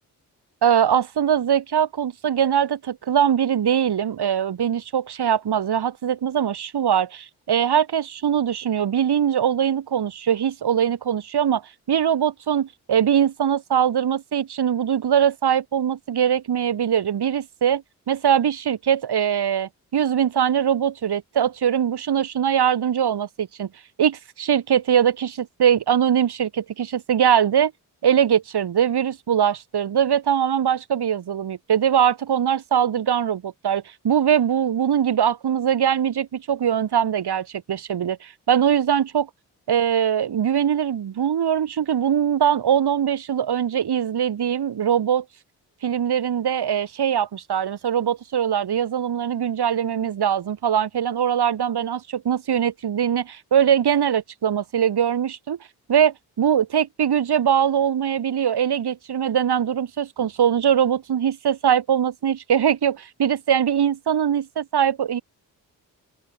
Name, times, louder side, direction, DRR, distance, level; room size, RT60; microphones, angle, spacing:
voice 1, 0.6-11.6 11.9-23.7 24.0-27.7 28.0-39.3 39.7-45.2 45.8-55.6 55.9-65.2, right 9 dB, 65° right, 2.9 m, -22 dB
open air
supercardioid pair, 45°, 42 cm